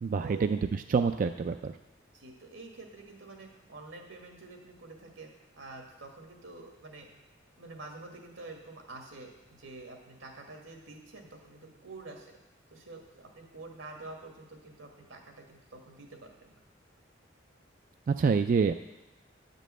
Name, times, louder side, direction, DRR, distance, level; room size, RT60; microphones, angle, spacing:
voice 1, 0.0-1.7 18.1-18.7, right 5 dB, 45° right, 8 dB, 0.3 m, -27 dB
voice 2, 2.1-7.1 7.6-12.3 12.7-16.5, right 3 dB, 90° right, 2 dB, 1.9 m, -47 dB
10.5 x 5.3 x 7.6 m, 0.99 s
head